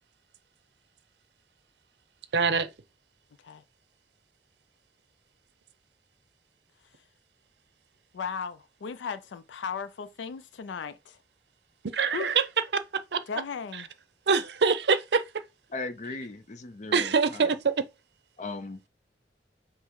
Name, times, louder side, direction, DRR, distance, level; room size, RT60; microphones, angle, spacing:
voice 1, 2.3-2.7 11.9-12.4 12.9-13.2 14.3-15.2 16.9-17.8, right 5 dB, 65° right, 0.6 m, -24 dB
voice 2, 8.1-11.2 12.1-12.3 13.3-13.9, left 6 dB, 90° left, 0.4 m, -36 dB
voice 3, 15.7-17.5 18.4-18.8, left 3 dB, 45° left, 0.6 m, -38 dB
5.4 x 2.0 x 4.6 m
head